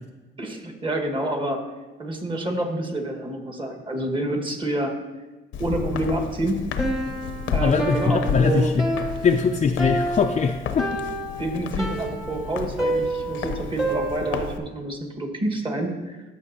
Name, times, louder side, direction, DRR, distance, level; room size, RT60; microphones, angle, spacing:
voice 1, 0.4-1.6 2.0-4.9 5.6-6.6 7.5-8.7 10.8-10.9 11.4-16.2, right 1 dB, 25° right, 3 dB, 1.6 m, -28 dB
Walk footsteps, 5.5-14.6, left 6 dB, 80° left, 0.8 m, -32 dB
Piano, 6.8-14.6, right 1 dB, 5° right, 1.1 m, -29 dB
voice 2, 7.6-8.8 9.2-11.0, left 5 dB, 35° left, 4 dB, 0.5 m, -21 dB
14.0 x 6.0 x 2.8 m, 1.2 s
cardioid pair, 90°, 20 cm